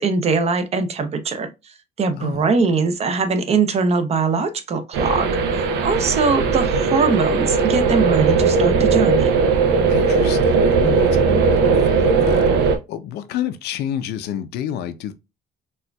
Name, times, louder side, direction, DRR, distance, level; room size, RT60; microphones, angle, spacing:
voice 1, 0.0-5.3 5.5-9.3, right 4 dB, 40° right, 0.6 m, -21 dB
sound 1, 4.9-12.8, right 4 dB, 90° right, 0.6 m, -18 dB
voice 2, 9.9-15.1, left 10 dB, 75° left, 0.5 m, -29 dB
4.2 x 2.4 x 2.2 m
cardioid pair, 110°, 17 cm